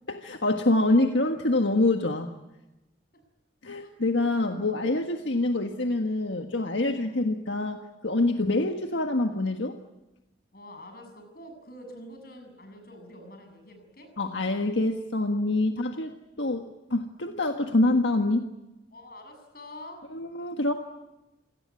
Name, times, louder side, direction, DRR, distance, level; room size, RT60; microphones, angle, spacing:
voice 1, 0.1-2.3 3.6-9.8 14.2-18.5 20.1-20.7, left 2 dB, 85° left, 5 dB, 1.6 m, -26 dB
voice 2, 5.2-5.5 6.9-7.2 8.3-8.5 10.5-14.1 18.9-20.1, left 1 dB, 55° left, 6 dB, 7.2 m, -47 dB
27.5 x 18.5 x 9.7 m, 1.0 s
head